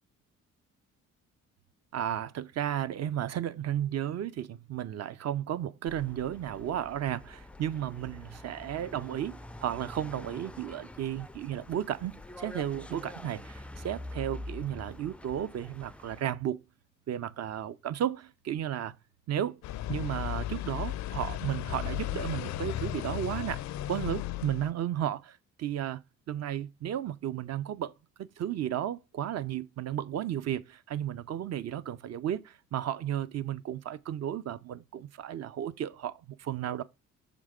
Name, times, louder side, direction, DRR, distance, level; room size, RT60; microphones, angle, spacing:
voice 1, 1.9-16.6 17.1-18.9 19.3-19.6 19.9-26.0 26.3-27.9 28.2-36.8, right 10 dB, 60° right, 0.7 m, -34 dB
sound 1, 5.9-16.2, left 1 dB, 5° left, 0.3 m, -46 dB
sound 2, 19.6-24.7, left 13 dB, 65° left, 0.5 m, -35 dB
6.6 x 3.6 x 5.0 m
cardioid pair, 90°, 30 cm